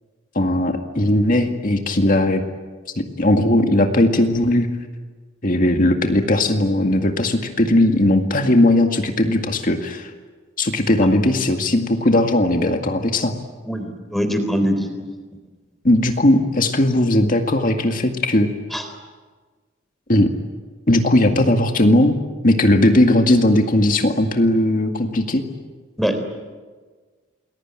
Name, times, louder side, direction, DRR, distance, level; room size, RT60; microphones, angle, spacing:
voice 1, 0.4-2.4 3.0-4.7 5.4-10.1 10.6-13.3 15.8-18.5 20.1-20.3 20.9-22.2 22.4-25.4, left 1 dB, 45° left, 4 dB, 2.0 m, -17 dB
voice 2, 13.7-15.1 18.7-18.9 26.0-26.2, equal, ahead, 7 dB, 3.7 m, -22 dB
29.0 x 21.0 x 9.0 m, 1.4 s
head